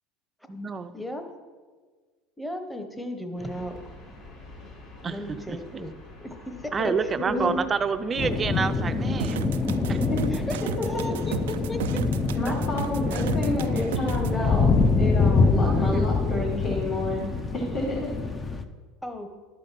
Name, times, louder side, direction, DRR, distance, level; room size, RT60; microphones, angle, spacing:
voice 1, 0.5-0.9 5.0-5.6 6.7-9.4 9.9-10.0 12.5-12.6 15.6-16.1, right 5 dB, 25° right, 10 dB, 0.5 m, -28 dB
voice 2, 2.4-3.8 5.1-5.9 6.2-6.7 7.0-7.6 10.3-10.4 10.8-11.4 11.7-11.8 19.0-19.3, left 1 dB, 5° left, 6 dB, 1.1 m, -35 dB
sound 1, 3.4-18.4, left 2 dB, 65° left, 3.4 m, -47 dB
voice 3, 7.2-7.6 10.1-10.2 10.8-11.0 12.4-14.7 15.0-18.1, left 1 dB, 45° left, -5 dB, 2.6 m, -30 dB
sound 2, 8.2-18.6, left 4 dB, 20° left, 0.7 m, -25 dB
sound 3, 9.2-14.3, right 11 dB, 90° right, 0.3 m, -35 dB
11.5 x 5.2 x 5.9 m, 1.5 s
supercardioid pair, 105°, 0 cm